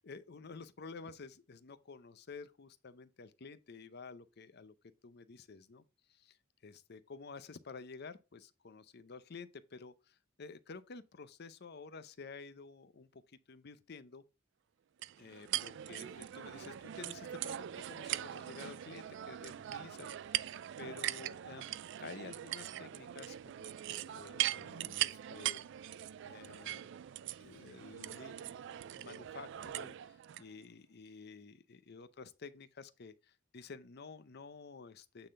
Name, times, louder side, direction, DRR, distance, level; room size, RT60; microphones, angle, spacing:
voice 1, 0.0-4.7 5.0-6.4 6.6-13.2 13.5-14.2 15.2-25.7 25.9-26.9 27.4-35.3, left 4 dB, 55° left, 0.6 m, -51 dB
sound 1, 15.0-30.4, right 12 dB, 60° right, 0.3 m, -41 dB
8.9 x 3.9 x 3.7 m
head